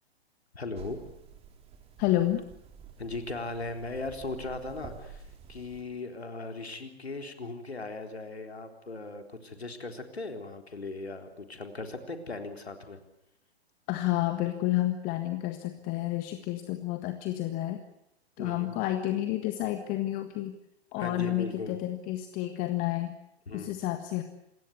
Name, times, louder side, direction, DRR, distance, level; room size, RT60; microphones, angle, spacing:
voice 1, 0.5-1.0 3.0-5.2 5.5-13.0 18.4-18.8 21.0-21.8 23.5-23.8, left 3 dB, 75° left, 5 dB, 3.9 m, -38 dB
sound 1, 0.7-5.8, right 6 dB, 20° right, 4.3 m, -49 dB
voice 2, 2.0-2.4 13.9-17.8 18.4-20.5 20.9-23.1 23.5-24.2, left 15 dB, 25° left, 9 dB, 1.6 m, -30 dB
27.5 x 21.0 x 8.1 m, 0.79 s
figure-of-eight pair, 115°, 32 cm